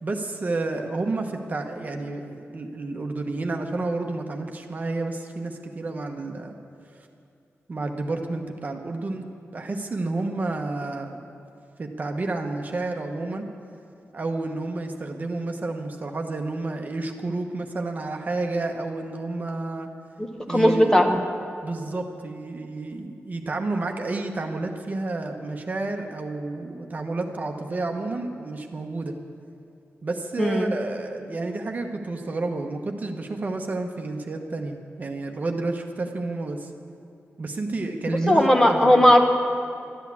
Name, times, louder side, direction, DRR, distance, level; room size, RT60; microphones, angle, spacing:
voice 1, 0.0-6.5 7.7-11.2 11.8-13.5 14.1-19.9 20.5-21.1 21.6-29.1 30.0-36.7 37.4-39.1, right 2 dB, 35° right, 3 dB, 1.0 m, -30 dB
voice 2, 20.2-21.2 30.4-30.7 38.3-39.2, equal, 10° left, 3 dB, 1.0 m, -18 dB
12.5 x 10.5 x 8.4 m, 2.6 s
wide cardioid pair, 170°, 5 cm